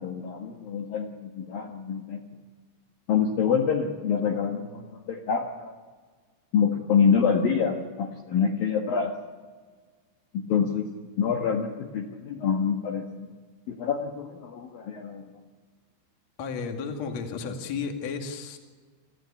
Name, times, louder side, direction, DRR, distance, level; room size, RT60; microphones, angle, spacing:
voice 1, 0.0-2.2 3.1-5.7 6.5-9.1 10.5-10.8 11.2-13.3 13.7-15.2, left 6 dB, 60° left, 1 dB, 2.9 m, -26 dB
voice 2, 16.4-18.6, left 5 dB, 45° left, 4 dB, 2.8 m, -33 dB
27.5 x 14.5 x 8.4 m, 1.5 s
omnidirectional pair, 5.3 m